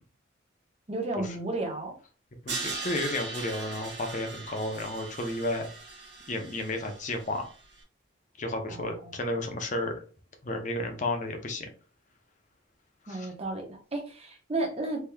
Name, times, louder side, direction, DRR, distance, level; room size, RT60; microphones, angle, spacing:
voice 1, 0.9-2.0 8.7-9.4 13.1-15.0, right 2 dB, 30° right, 0 dB, 0.8 m, -33 dB
voice 2, 2.4-5.7 6.3-7.4 8.4-9.9 10.4-11.7 13.1-13.3, left 1 dB, 40° left, 5 dB, 0.6 m, -32 dB
Crash cymbal, 2.5-7.5, right 3 dB, 55° right, 0.9 m, -39 dB
3.4 x 2.9 x 2.2 m, 0.38 s
head